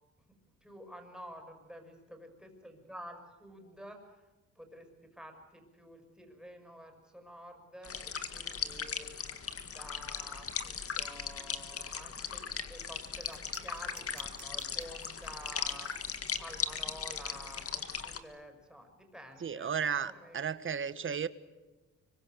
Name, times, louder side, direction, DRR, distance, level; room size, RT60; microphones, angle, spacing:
voice 1, 0.6-4.3 4.5-9.1 9.6-19.7 20.0-20.4, equal, ahead, 5 dB, 6.4 m, -50 dB
sound 1, 7.8-18.2, left 6 dB, 45° left, 2.0 m, -38 dB
sound 2, 13.1-18.2, right 9 dB, 65° right, 4.8 m, -57 dB
voice 2, 19.4-21.3, right 7 dB, 40° right, 13 dB, 1.4 m, -34 dB
25.5 x 23.5 x 8.0 m, 1.2 s
cardioid pair, 100°, 31 cm